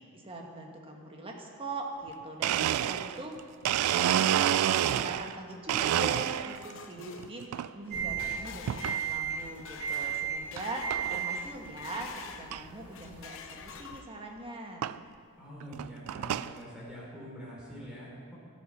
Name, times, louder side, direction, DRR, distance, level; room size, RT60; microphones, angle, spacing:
voice 1, 0.1-3.4 3.9-14.9, right 2 dB, 25° right, 1 dB, 1.4 m, -41 dB
Domestic sounds home sounds, 2.1-2.2 2.4-5.4 5.7-6.7 7.2-7.7 8.7-9.0 9.6-9.7 10.6-10.7 10.9-11.2 11.7-11.8 12.0-12.1 12.5-12.6 13.9-14.0 14.8-15.0 15.6-16.5, right 11 dB, 85° right, 0.3 m, -28 dB
sound 1, 5.5-12.5 12.9-14.3, left 6 dB, 60° left, 0.7 m, -48 dB
sound 2, 7.9-14.0, right 7 dB, 50° right, 1.7 m, -36 dB
voice 2, 15.4-18.3, equal, 5° right, -6 dB, 3.5 m, -44 dB
13.0 x 8.3 x 5.6 m, 2.2 s
head